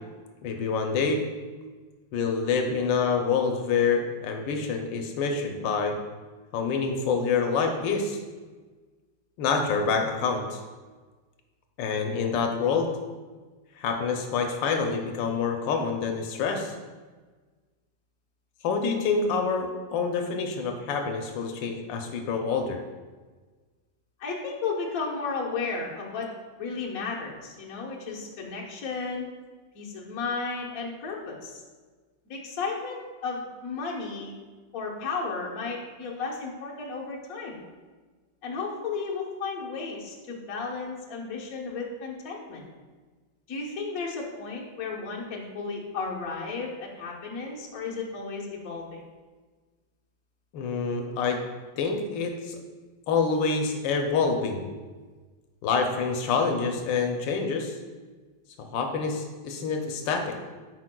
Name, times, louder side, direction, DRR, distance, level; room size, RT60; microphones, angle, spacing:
voice 1, 0.4-1.2 2.1-5.9 6.5-8.2 9.4-10.6 11.8-12.9 13.8-16.8 18.6-22.8 50.5-51.4 51.8-52.6 53.1-54.7 55.6-57.8 58.6-60.3, left 5 dB, 85° left, 3 dB, 1.3 m, -27 dB
voice 2, 24.2-26.3 26.6-29.3 29.7-31.6 32.3-34.3 34.7-37.6 38.4-42.6 43.5-49.0, left 4 dB, 55° left, -2 dB, 1.3 m, -34 dB
9.7 x 4.6 x 2.2 m, 1.4 s
omnidirectional pair, 1.9 m